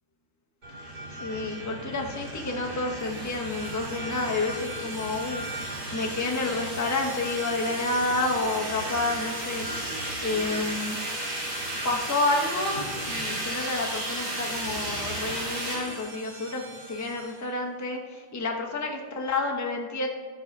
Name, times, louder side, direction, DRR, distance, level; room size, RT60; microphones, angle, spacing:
sound 1, 0.6-17.4, right 1 dB, 60° right, 3.1 m, -34 dB
voice 1, 1.1-11.0 11.8-20.1, left 2 dB, 25° left, 1 dB, 0.4 m, -30 dB
13.0 x 4.8 x 5.2 m, 1.5 s
omnidirectional pair, 2.0 m